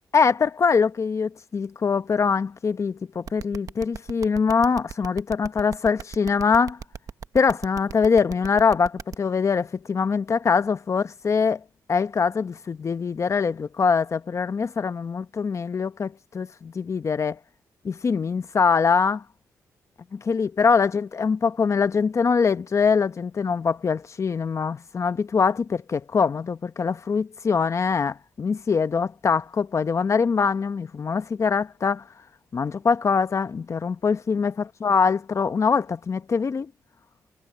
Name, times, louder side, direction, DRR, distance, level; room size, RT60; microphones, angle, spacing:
voice 1, 0.1-6.8 7.3-11.6 11.9-17.4 17.8-19.2 20.1-32.0 32.5-36.7, left 5 dB, 50° left, 0.9 m, -23 dB
sound 1, 3.3-9.1, right 6 dB, 60° right, 1.1 m, -36 dB
cardioid pair, 70°, 7 cm